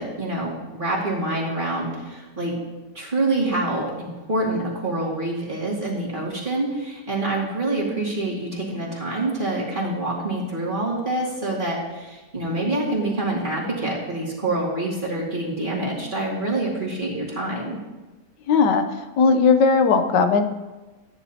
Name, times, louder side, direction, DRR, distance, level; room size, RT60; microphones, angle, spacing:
voice 1, 0.0-2.6 2.9-17.8, right 2 dB, 30° right, -5 dB, 2.6 m, -26 dB
voice 2, 18.5-18.8 19.2-20.5, left 5 dB, 85° left, 7 dB, 1.5 m, -17 dB
15.0 x 10.0 x 2.9 m, 1.2 s
omnidirectional pair, 1.8 m